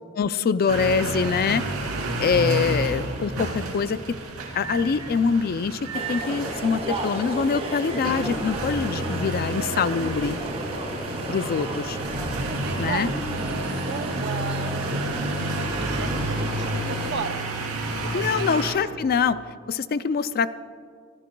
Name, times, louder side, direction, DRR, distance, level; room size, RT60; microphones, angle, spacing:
voice 1, 0.2-1.6 2.2-4.0 4.5-5.8 6.1-10.4 11.3-12.0 12.8-13.1 18.1-19.4 19.7-20.5, left 5 dB, 45° left, 14 dB, 0.4 m, -24 dB
sound 1, 0.7-18.7, right 2 dB, 80° right, 2.7 m, -30 dB
sound 2, 4.8-14.4, equal, 25° left, 2.4 m, -49 dB
sound 3, 5.9-17.1, right 1 dB, 30° right, 1.9 m, -33 dB
voice 2, 12.4-17.4 17.9-18.6, right 5 dB, 50° right, 9 dB, 0.7 m, -36 dB
25.0 x 14.0 x 2.3 m, 2.2 s
head